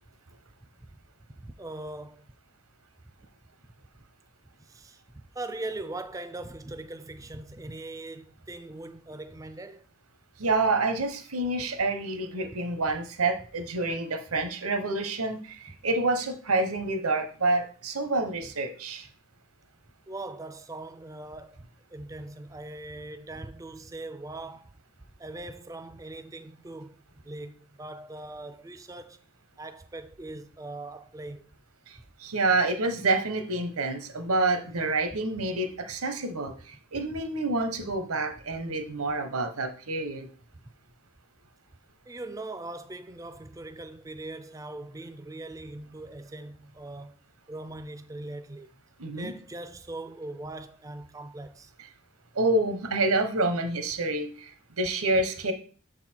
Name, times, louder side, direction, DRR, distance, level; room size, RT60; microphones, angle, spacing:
voice 1, 1.4-2.2 4.6-5.0 5.3-9.9 13.4-13.5 15.7-15.8 20.1-21.6 21.9-24.7 25.2-27.0 27.2-29.2 29.6-31.5 35.4-35.5 37.1-37.2 42.1-47.2 47.5-48.7 49.2-51.7 55.1-55.3, right 2 dB, 15° right, 0.3 m, -40 dB
voice 2, 10.4-19.1 31.9-40.3 49.0-49.3 52.3-55.5, right 2 dB, 80° right, 1.0 m, -28 dB
6.7 x 4.0 x 4.4 m
head